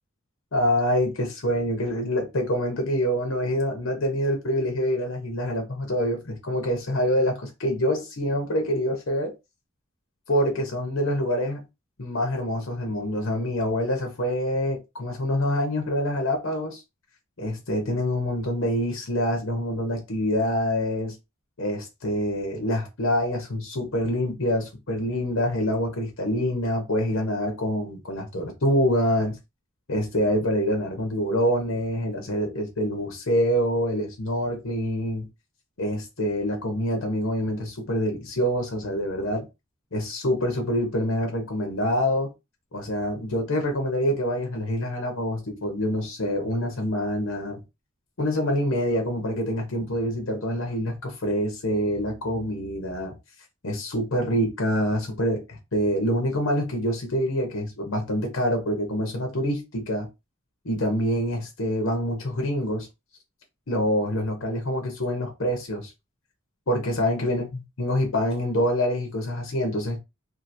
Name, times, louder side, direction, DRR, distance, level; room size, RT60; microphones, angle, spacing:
voice 1, 0.5-9.3 10.3-11.6 12.0-16.8 17.4-21.1 21.6-29.4 29.9-35.3 35.8-39.5 39.9-42.3 42.7-47.6 48.2-53.2 53.6-60.1 60.6-62.9 63.7-65.9 66.7-70.0, equal, 75° left, 0.9 m, -26 dB
2.9 x 2.5 x 2.6 m
head